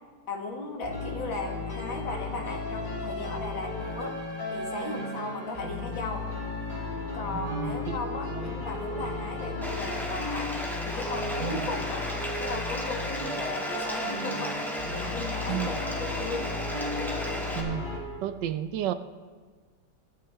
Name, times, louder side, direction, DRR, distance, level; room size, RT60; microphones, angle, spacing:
voice 1, 0.3-4.1 4.5-6.3 7.1-10.5 10.8-12.1 12.4-14.6 14.9-16.5, left 3 dB, 80° left, 0 dB, 2.7 m, -36 dB
sound 1, 0.8-18.0, left 2 dB, 25° left, 3.7 m, -35 dB
voice 2, 7.3-8.0 8.3-8.5 11.4-11.7 15.5-15.7 17.6-17.9 18.2-18.9, right 12 dB, 75° right, 11 dB, 1.2 m, -32 dB
Bathtub (filling or washing), 9.6-17.6, equal, ahead, 1.9 m, -34 dB
22.5 x 10.5 x 3.5 m, 1.5 s
omnidirectional pair, 2.1 m